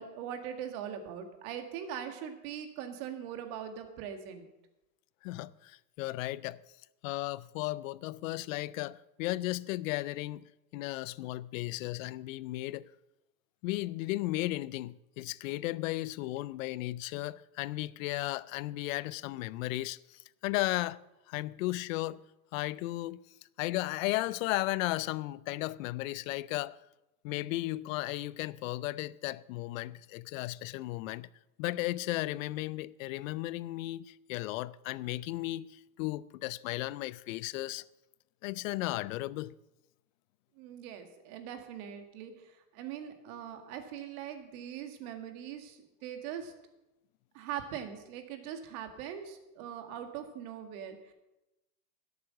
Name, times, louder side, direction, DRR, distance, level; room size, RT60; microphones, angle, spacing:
voice 1, 0.0-4.5 40.6-46.5 47.3-51.1, right 9 dB, 60° right, 2.0 m, -41 dB
voice 2, 5.2-6.6 7.0-12.9 13.6-21.0 21.3-22.2 22.5-23.2 23.6-26.8 27.2-31.3 31.6-37.8 38.4-39.5, left 18 dB, 55° left, 0.5 m, -35 dB
12.0 x 8.2 x 6.4 m
supercardioid pair, 125°, 49 cm